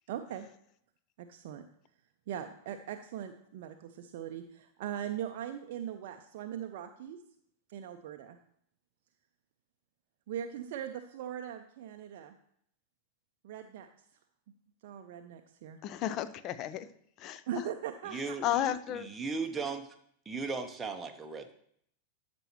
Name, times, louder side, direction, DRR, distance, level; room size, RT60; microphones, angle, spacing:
voice 1, 0.1-0.5 1.2-1.6 2.3-7.2 7.7-8.4 10.3-12.3 13.4-13.9 14.8-15.8 17.5-18.4, right 10 dB, 50° right, 6 dB, 0.5 m, -40 dB
voice 2, 15.8-16.9 17.2-17.7 18.4-19.1, left 11 dB, 35° left, 14 dB, 0.5 m, -33 dB
voice 3, 18.1-18.4 18.9-19.9 20.3-21.5, right 4 dB, 15° right, 4 dB, 0.7 m, -36 dB
12.5 x 6.1 x 3.0 m, 0.68 s
figure-of-eight pair, 90°, 0 cm